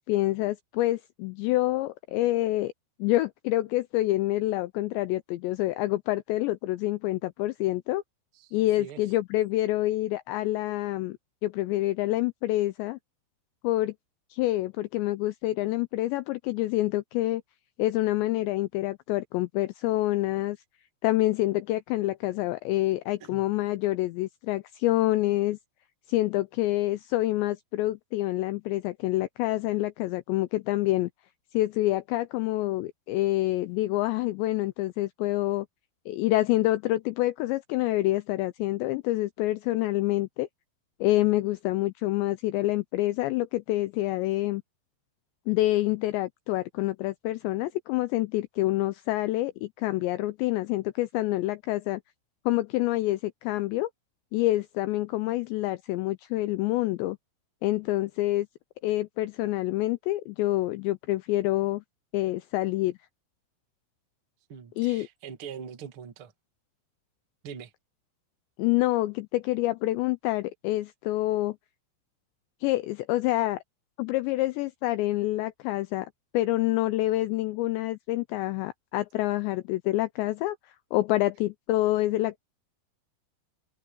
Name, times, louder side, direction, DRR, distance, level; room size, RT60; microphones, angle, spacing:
voice 1, 0.0-2.7 3.0-8.0 8.5-11.2 11.4-13.0 13.6-13.9 14.3-17.4 17.8-20.6 21.0-25.6 26.1-31.1 31.5-35.7 36.1-40.5 41.0-44.6 45.5-52.0 52.5-53.9 54.3-57.2 57.6-58.5 58.8-61.8 62.1-63.0 64.8-65.1 68.6-71.6 72.6-73.6 74.0-80.6 80.9-82.4, left 17 dB, 90° left, 2.5 m, -27 dB
voice 2, 8.3-9.0 23.2-23.4 64.5-66.3 67.4-67.7, right 7 dB, 40° right, 2.0 m, -43 dB
omnidirectional pair, 5.8 m